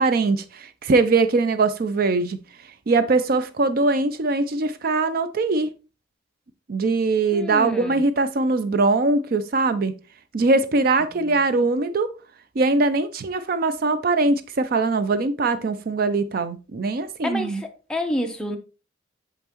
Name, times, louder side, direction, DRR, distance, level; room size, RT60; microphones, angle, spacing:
voice 1, 0.0-2.4 2.9-5.7 6.7-10.0 10.3-12.1 12.6-17.6, right 3 dB, 50° right, 0.4 m, -21 dB
voice 2, 7.3-8.0 11.2-11.3 17.2-17.6 17.9-18.6, left 1 dB, 5° left, 0.7 m, -28 dB
7.0 x 5.4 x 2.9 m
head